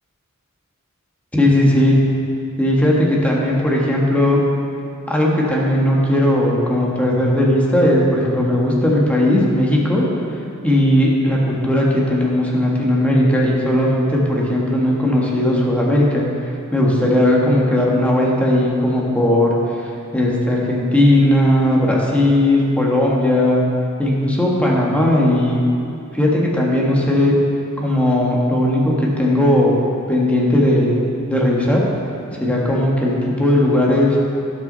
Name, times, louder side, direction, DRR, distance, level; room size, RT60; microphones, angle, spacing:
voice 1, 1.3-2.0 2.6-4.4 5.1-10.0 10.6-16.3 16.7-19.5 19.8-19.9 20.1-23.6 24.0-25.6 26.1-27.3 27.8-29.8 30.1-31.0 31.3-31.8 32.4-34.2, left 1 dB, 5° left, -3 dB, 1.6 m, -17 dB
17.5 x 6.3 x 4.0 m, 2.5 s
head